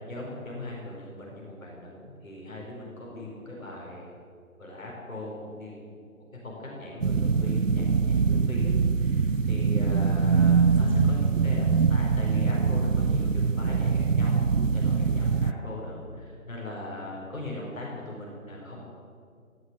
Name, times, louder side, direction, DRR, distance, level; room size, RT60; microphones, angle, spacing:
voice 1, 0.0-4.1 4.6-5.3 5.6-5.8 6.4-14.3 14.7-18.8, left 1 dB, 65° left, -4 dB, 5.1 m, -39 dB
sound 1, 7.0-15.5, right 5 dB, 60° right, 0.7 m, -23 dB
17.0 x 7.9 x 9.0 m, 2.3 s
figure-of-eight pair, 150°, 43 cm